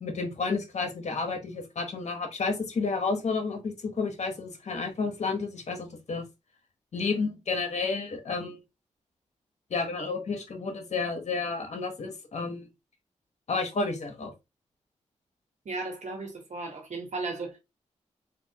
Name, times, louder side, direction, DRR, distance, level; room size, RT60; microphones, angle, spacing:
voice 1, 0.0-6.2 6.9-8.6 9.7-12.7 13.5-14.3, left 4 dB, 60° left, 1.1 m, -31 dB
voice 2, 15.6-17.6, right 3 dB, 65° right, 1.2 m, -35 dB
3.4 x 2.7 x 2.8 m
cardioid pair, 65°, 13 cm